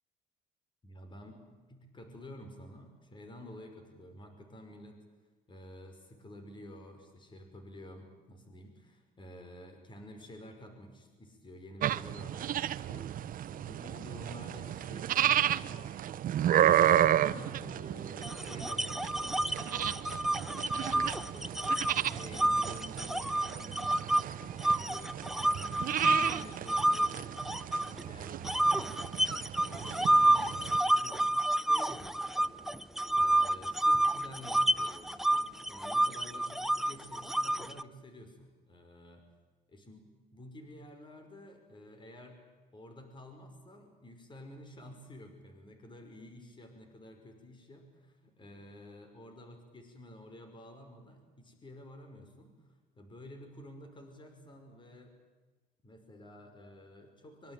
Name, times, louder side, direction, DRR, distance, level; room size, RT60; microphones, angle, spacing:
voice 1, 0.8-5.0 5.5-16.7 17.1-21.7 21.9-32.7 33.1-39.3 39.7-42.4 42.7-55.1 55.8-57.5, left 1 dB, 30° left, 6 dB, 5.6 m, -51 dB
sound 1, 11.8-30.8, right 11 dB, 55° right, 1.0 m, -32 dB
sound 2, 18.2-24.2 24.6-28.0 28.4-37.8, right 1 dB, ahead, 0.8 m, -29 dB
25.5 x 24.0 x 9.2 m, 1.3 s
cardioid pair, 110°, 17 cm